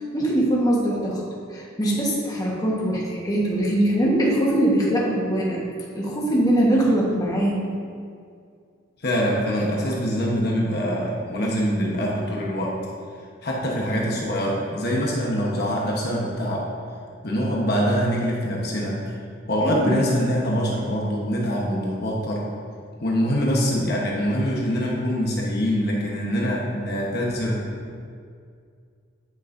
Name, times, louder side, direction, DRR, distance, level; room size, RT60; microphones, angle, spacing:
voice 1, 0.1-1.2 1.5-5.6 5.9-7.6 19.6-20.0, right 1 dB, 15° left, -4 dB, 1.3 m, -22 dB
voice 2, 9.0-12.7 13.4-16.7 17.2-19.0 19.5-22.5 23.0-27.6, equal, 50° left, -3 dB, 1.1 m, -24 dB
10.0 x 8.4 x 2.7 m, 2.2 s
head